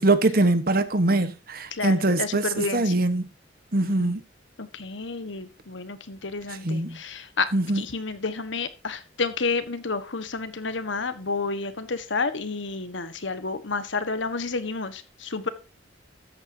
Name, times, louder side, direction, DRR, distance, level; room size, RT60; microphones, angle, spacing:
voice 1, 0.0-3.3 3.7-4.2 6.5-7.0 7.5-7.9, right 2 dB, 50° right, 1.3 m, -23 dB
voice 2, 1.8-2.9 3.8-4.1 4.6-7.5 7.8-15.5, left 4 dB, 80° left, 1.4 m, -30 dB
13.5 x 9.1 x 2.8 m
head